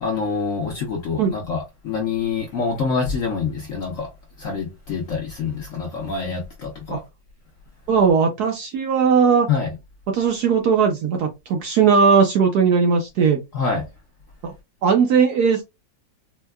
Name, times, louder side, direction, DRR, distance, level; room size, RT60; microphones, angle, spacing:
voice 1, 0.0-4.1 4.4-7.0 9.5-9.7 13.5-13.9, left 5 dB, 60° left, 0.9 m, -26 dB
voice 2, 7.9-9.5 10.1-13.4 14.4-14.5 14.8-15.6, right 6 dB, 70° right, 1.0 m, -18 dB
4.4 x 2.2 x 2.2 m
omnidirectional pair, 2.1 m